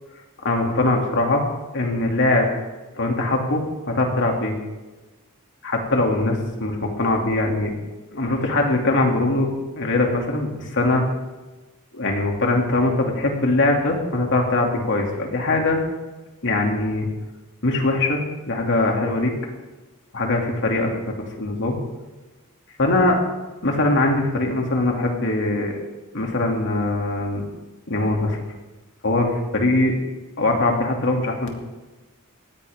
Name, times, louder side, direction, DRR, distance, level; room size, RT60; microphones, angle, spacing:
voice 1, 0.4-1.4 1.7-2.5 3.0-4.5 5.6-7.8 8.1-9.5 9.8-11.1 11.9-15.8 16.4-17.1 17.6-19.3 20.1-21.0 21.4-21.8 22.8-23.2 23.6-25.7 26.1-27.4 27.9-28.4 29.0-29.9 30.4-31.5, left 2 dB, 60° left, 1 dB, 2.7 m, -21 dB
19.0 x 15.5 x 3.7 m, 1.1 s
head